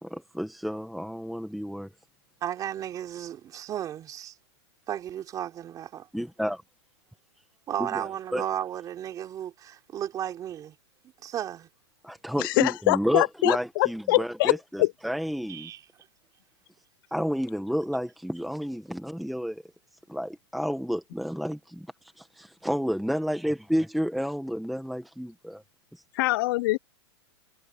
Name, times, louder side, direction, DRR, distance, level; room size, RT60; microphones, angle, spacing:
voice 1, 0.0-1.9 6.1-6.6 7.8-8.4 12.0-15.7 17.1-19.6 20.1-21.9 22.2-25.6 25.9-26.0, equal, ahead, 1.3 m, -30 dB
voice 2, 2.4-4.4 4.9-6.1 7.7-10.8 11.2-11.7 15.5-15.8, right 10 dB, 25° right, 3.8 m, -34 dB
voice 3, 12.4-14.9 26.2-26.8, left 20 dB, 50° left, 0.6 m, -24 dB
hypercardioid pair, 140°, 15 cm